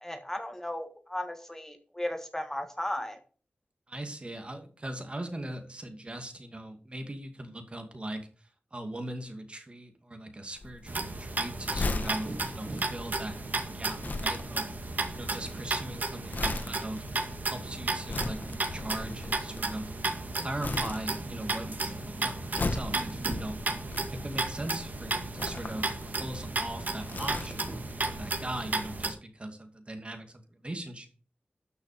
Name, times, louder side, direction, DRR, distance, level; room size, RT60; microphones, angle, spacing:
voice 1, 0.0-3.2, left 1 dB, 15° left, 6 dB, 1.5 m, -35 dB
voice 2, 3.9-13.4 13.7-14.8 15.1-17.1 17.4-19.9 20.3-23.6 24.1-27.8 28.1-31.1, right 1 dB, 35° right, 6 dB, 2.4 m, -40 dB
Crumpling crinkling, 10.5-20.2 20.6-21.6 21.8-24.6 25.3-27.9 28.2-28.3, left 2 dB, 55° left, 1.4 m, -37 dB
sound 1, 10.9-29.1, right 2 dB, 55° right, 2.1 m, -34 dB
12.5 x 6.3 x 5.0 m, 0.38 s
wide cardioid pair, 85°, 4 cm